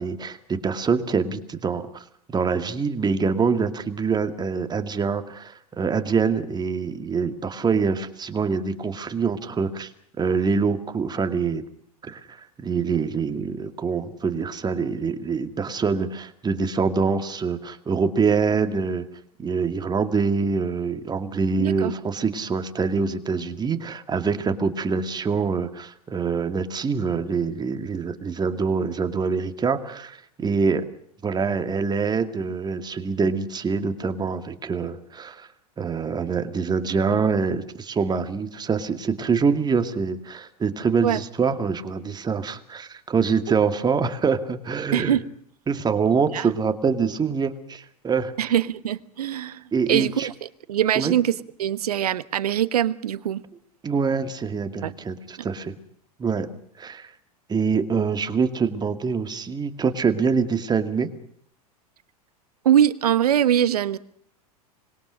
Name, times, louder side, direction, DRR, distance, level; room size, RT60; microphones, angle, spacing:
voice 1, 0.0-2.0 2.3-9.9 10.2-11.6 12.0-19.1 19.4-30.9 31.2-35.5 35.8-45.2 45.7-48.3 49.7-50.3 51.0-51.1 53.8-55.7 56.2-56.5 56.8-57.1 57.5-61.1, right 5 dB, 20° right, 2.3 m, -25 dB
voice 2, 21.6-21.9 41.0-41.2 44.9-45.3 46.3-46.5 48.4-53.4 54.8-54.9 55.4-55.5 62.6-64.0, right 10 dB, 75° right, 1.2 m, -23 dB
25.5 x 21.5 x 6.4 m
hypercardioid pair, 90°, 20 cm